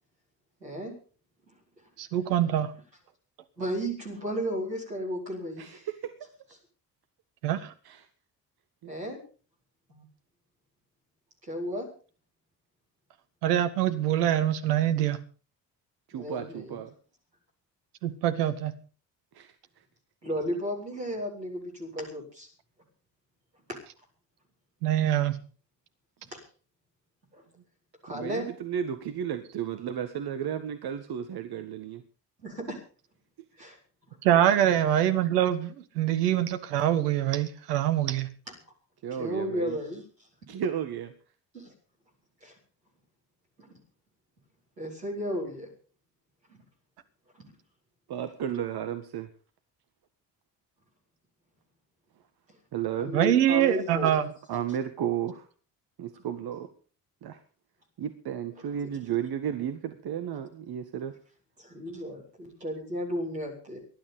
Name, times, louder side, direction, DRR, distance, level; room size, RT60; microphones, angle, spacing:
voice 1, 0.6-0.9 1.5-1.6 3.6-5.9 8.8-9.2 9.9-10.0 11.4-11.9 16.1-16.8 20.2-22.5 26.3-26.4 27.3-27.4 28.0-28.5 32.4-32.8 33.6-33.8 39.1-40.0 41.5-41.7 42.4-42.5 43.6-43.8 44.8-45.7 46.5-46.6 53.0-54.2 61.6-63.8, equal, 90° right, 4.6 m, -34 dB
voice 2, 2.0-2.7 7.4-7.7 13.4-15.2 18.0-18.7 24.8-25.4 34.2-38.3 53.1-54.3, right 11 dB, 75° right, 1.6 m, -24 dB
voice 3, 5.6-6.3 7.9-8.0 8.8-8.9 16.1-16.9 19.3-19.5 28.1-32.0 39.0-39.8 40.5-41.1 48.1-49.3 52.7-53.3 54.5-55.5 56.0-56.7 57.2-57.4 58.0-61.2, right 9 dB, 50° right, 1.8 m, -33 dB
19.0 x 12.0 x 5.3 m
figure-of-eight pair, 40°, 48 cm